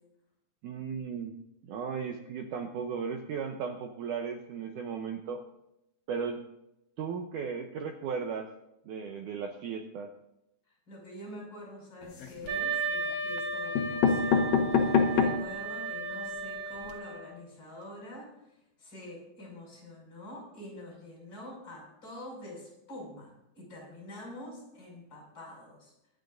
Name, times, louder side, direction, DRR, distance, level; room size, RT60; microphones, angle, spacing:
voice 1, 0.6-1.3 1.6-5.4 6.1-6.4 7.0-8.5 8.9-10.1, right 6 dB, 85° right, 4 dB, 1.8 m, -36 dB
voice 2, 10.9-18.3 18.8-25.9, left 1 dB, 25° left, -1 dB, 6.4 m, -46 dB
sound 1, 12.0-12.6 13.4-13.5 13.7-15.5 16.0-16.1 16.3-16.4 16.7-16.9, left 5 dB, 60° left, 2.1 m, -26 dB
Wind instrument woodwind instrument, 12.5-17.4, right 2 dB, 60° right, 4.4 m, -35 dB
24.0 x 10.0 x 2.6 m, 0.85 s
omnidirectional pair, 4.6 m